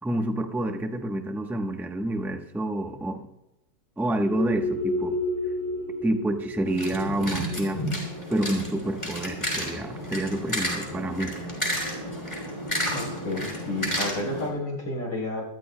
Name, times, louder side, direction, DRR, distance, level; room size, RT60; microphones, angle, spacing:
voice 1, 0.0-3.2 4.0-5.2 6.0-7.8 8.3-11.3, right 1 dB, ahead, 4 dB, 0.5 m, -28 dB
sound 1, 4.2-10.4, left 1 dB, 50° right, 5.4 m, -32 dB
sound 2, 6.7-14.5, equal, 15° left, 4.7 m, -31 dB
voice 2, 12.9-15.4, left 1 dB, 80° left, -1 dB, 4.4 m, -31 dB
24.5 x 13.5 x 2.2 m, 0.89 s
omnidirectional pair, 1.9 m